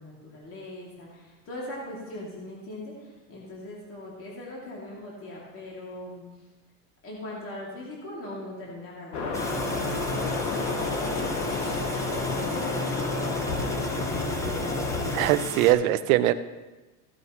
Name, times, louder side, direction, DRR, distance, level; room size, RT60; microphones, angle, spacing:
voice 1, 0.0-6.5 7.0-9.6 10.1-15.4, left 1 dB, 30° left, -4 dB, 2.6 m, -41 dB
sound 1, 9.1-15.3, left 4 dB, 65° left, 1.8 m, -30 dB
sound 2, 9.3-15.7, equal, 5° left, 0.9 m, -33 dB
voice 2, 15.1-16.3, right 14 dB, 60° right, 12 dB, 0.7 m, -21 dB
15.5 x 8.4 x 3.1 m, 1.2 s
supercardioid pair, 140°, 47 cm